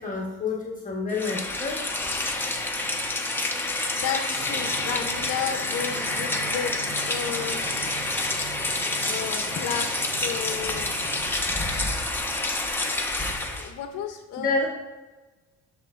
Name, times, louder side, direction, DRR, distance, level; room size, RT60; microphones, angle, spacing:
voice 1, 0.0-1.8 7.8-7.9 14.4-14.7, left 3 dB, 30° left, -3 dB, 1.3 m, -28 dB
Rain, 1.1-13.7, left 2 dB, 5° left, 1.0 m, -28 dB
voice 2, 3.9-6.7 7.1-7.8 9.1-9.9 10.2-10.9 13.5-14.7, left 8 dB, 60° left, 5 dB, 0.8 m, -32 dB
sound 1, 4.3-11.4, right 2 dB, 35° right, 2.3 m, -40 dB
12.5 x 4.3 x 2.5 m, 1.2 s
supercardioid pair, 85°, 29 cm